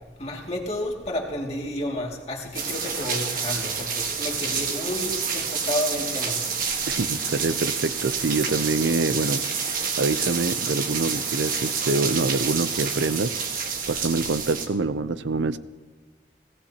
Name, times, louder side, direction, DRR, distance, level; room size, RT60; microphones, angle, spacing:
voice 1, 0.2-6.4, left 1 dB, 35° left, -1 dB, 2.4 m, -31 dB
sound 1, 2.5-14.7, right 5 dB, 50° right, 1.5 m, -28 dB
voice 2, 6.9-9.4 9.7-13.3 13.9-15.6, right 3 dB, 85° right, 14 dB, 0.6 m, -25 dB
24.0 x 16.5 x 2.9 m, 1.3 s
head